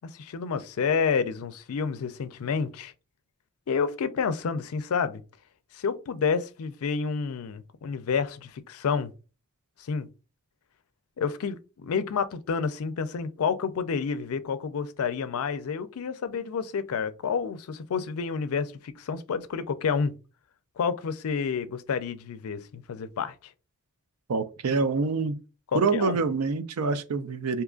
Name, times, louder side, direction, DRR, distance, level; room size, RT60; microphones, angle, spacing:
voice 1, 0.1-2.9 3.7-5.2 5.7-9.1 9.8-10.1 11.2-20.1 20.8-23.5 25.7-26.2, left 6 dB, 75° left, 0.4 m, -29 dB
voice 2, 24.3-25.4 25.7-27.6, right 4 dB, 80° right, 0.4 m, -26 dB
3.6 x 2.8 x 2.4 m
head